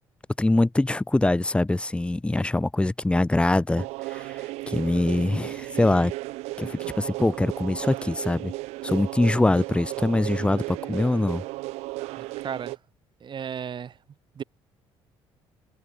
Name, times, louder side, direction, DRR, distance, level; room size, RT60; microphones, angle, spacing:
voice 1, 0.4-4.3 4.7-6.1 6.6-8.5 8.8-11.4, left 2 dB, 10° left, 0.8 m, -23 dB
sound 1, 3.8-12.8, right 21 dB, 90° right, 0.9 m, -35 dB
voice 2, 12.2-12.8 13.2-14.0 14.4-14.5, right 8 dB, 45° right, 2.4 m, -34 dB
cardioid pair, 85°, 11 cm